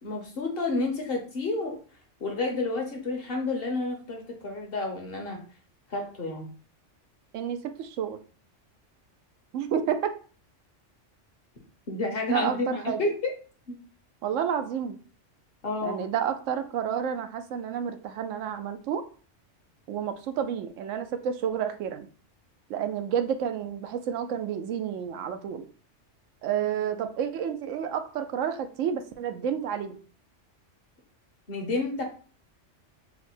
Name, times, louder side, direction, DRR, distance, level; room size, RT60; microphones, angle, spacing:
voice 1, 0.0-1.8 2.2-5.4 5.9-6.5 11.9-13.3 13.7-13.8 15.6-16.0 31.5-32.0, left 2 dB, 55° left, 2 dB, 1.1 m, -30 dB
voice 2, 7.3-8.2 9.5-10.1 12.3-13.0 14.2-15.0 15.8-19.0 19.9-22.1 22.7-25.7 26.4-30.0, right 8 dB, 85° right, 8 dB, 0.9 m, -30 dB
4.0 x 2.1 x 4.3 m, 0.40 s
omnidirectional pair, 1.3 m